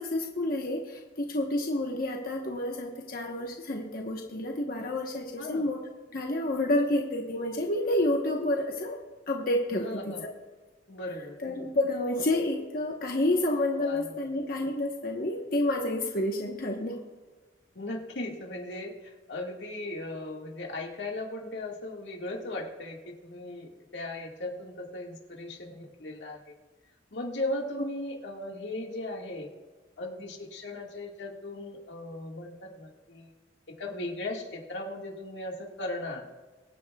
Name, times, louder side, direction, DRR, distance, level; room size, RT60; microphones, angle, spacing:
voice 1, 0.0-5.8 6.1-9.0 9.3-10.2 11.4-17.0, left 1 dB, 55° left, 1 dB, 1.1 m, -29 dB
voice 2, 9.8-10.3 10.9-11.4 13.7-14.1 17.8-26.5 27.1-29.5 30.0-33.3 33.8-36.2, left 2 dB, 90° left, 0 dB, 1.9 m, -37 dB
23.5 x 9.4 x 2.4 m, 1.3 s
head